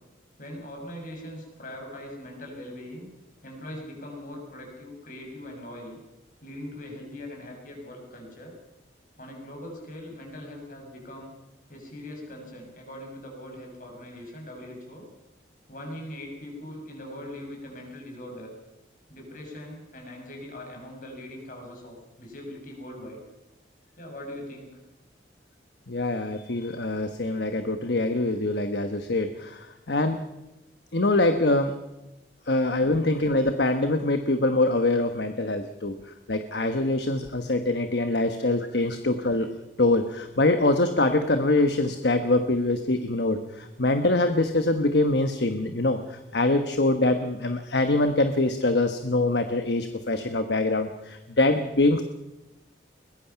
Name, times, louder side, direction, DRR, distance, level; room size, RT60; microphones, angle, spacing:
voice 1, 0.4-3.1 3.4-6.0 6.4-8.5 9.2-11.3 11.7-15.1 15.7-18.5 19.1-23.2 24.0-24.7 32.4-33.3 38.4-38.5, left 1 dB, 45° left, 1 dB, 6.4 m, -41 dB
voice 2, 25.9-30.2 30.9-31.7 32.5-39.5 39.8-52.0, left 2 dB, 60° left, 8 dB, 1.2 m, -24 dB
22.0 x 20.5 x 5.8 m, 0.97 s
head